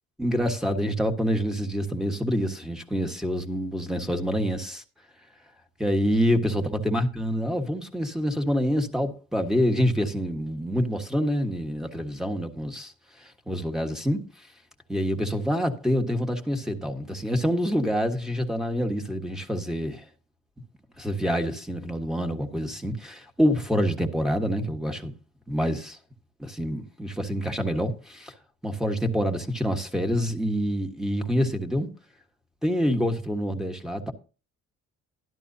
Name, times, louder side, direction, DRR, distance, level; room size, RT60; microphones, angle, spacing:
voice 1, 0.2-4.8 5.8-12.9 13.5-14.2 14.9-20.0 21.0-25.1 25.5-26.0 26.4-28.3 28.6-31.9 32.6-34.1, equal, ahead, 1.4 m, -26 dB
12.5 x 11.0 x 2.7 m
cardioid pair, 90°, 30 cm